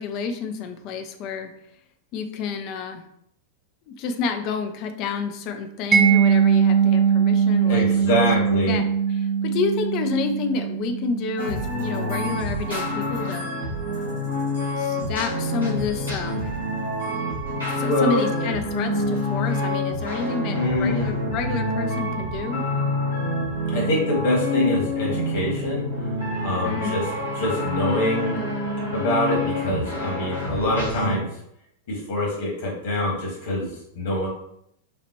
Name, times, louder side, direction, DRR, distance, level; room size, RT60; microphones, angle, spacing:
voice 1, 0.0-1.5 2.1-3.0 3.9-13.5 14.8-16.5 17.8-22.6 26.6-27.0, left 5 dB, 40° left, 7 dB, 0.6 m, -29 dB
Mallet percussion, 5.9-12.7, right 7 dB, 20° right, 0.4 m, -21 dB
voice 2, 7.6-8.8 17.8-18.2 20.5-21.1 23.7-26.1 26.4-27.0 27.3-28.4 28.9-31.3 31.9-34.3, left 1 dB, 60° left, -2 dB, 1.7 m, -24 dB
sound 1, 11.4-31.2, left 1 dB, 85° right, 1.7 m, -27 dB
5.9 x 2.5 x 3.0 m, 0.73 s
figure-of-eight pair, 90°, 0 cm